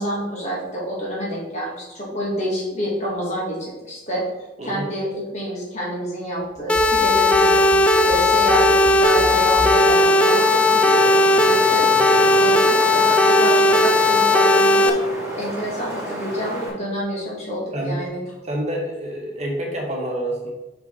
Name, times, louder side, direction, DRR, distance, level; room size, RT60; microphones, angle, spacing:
voice 1, 0.0-4.2 4.6-11.9 12.4-15.0 15.3-18.2, equal, 35° left, -5 dB, 2.5 m, -28 dB
sound 1, 6.4-9.9 10.2-10.3, right 1 dB, 65° right, 1.2 m, -33 dB
sound 2, 6.7-14.9, left 2 dB, 5° left, 0.4 m, -16 dB
Wind, 9.0-16.7, equal, 15° right, 1.9 m, -31 dB
voice 2, 18.4-20.5, right 1 dB, 35° right, -1 dB, 1.4 m, -27 dB
5.9 x 5.8 x 4.1 m, 1.0 s
head